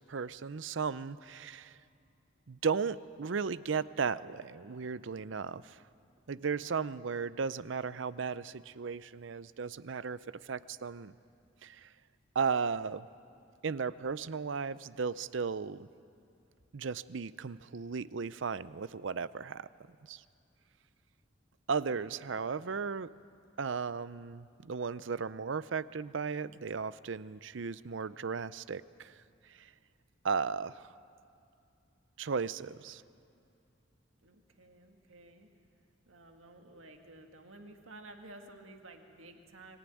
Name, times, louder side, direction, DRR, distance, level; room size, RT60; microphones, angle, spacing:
voice 1, 0.0-1.8 2.5-5.8 6.3-11.1 11.6-11.9 12.3-13.1 13.6-15.9 16.7-19.7 20.1-20.2 21.7-23.1 23.6-29.2 29.5-29.7 30.2-30.9 32.2-33.0, right 5 dB, 70° right, 17 dB, 0.5 m, -35 dB
voice 2, 21.9-22.5 34.2-35.5 36.1-39.8, right 2 dB, 85° right, 4 dB, 2.0 m, -53 dB
25.0 x 15.0 x 9.3 m, 2.5 s
head